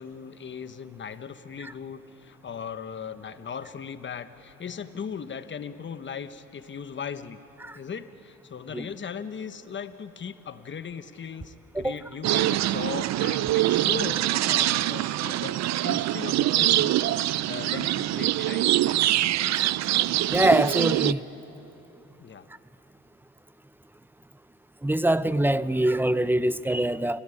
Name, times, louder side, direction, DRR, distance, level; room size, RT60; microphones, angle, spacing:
voice 1, 0.0-7.4 7.7-18.7 22.2-22.5, left 7 dB, 40° left, 1.1 m, -38 dB
sound 1, 12.2-21.1, right 14 dB, 65° right, 0.5 m, -24 dB
voice 2, 20.3-21.2 24.8-27.2, right 1 dB, 5° right, 0.6 m, -24 dB
30.0 x 13.5 x 9.8 m
cardioid pair, 90°, 30 cm